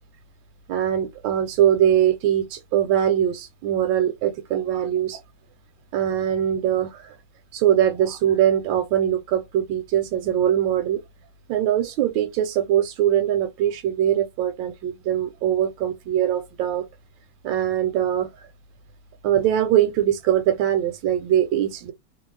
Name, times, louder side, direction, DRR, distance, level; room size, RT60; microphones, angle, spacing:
voice 1, 0.7-5.2 5.9-7.1 7.5-11.0 11.5-16.9 17.4-18.3 19.2-21.9, right 10 dB, 85° right, 1.3 m, -22 dB
3.0 x 2.3 x 3.1 m
omnidirectional pair, 2.0 m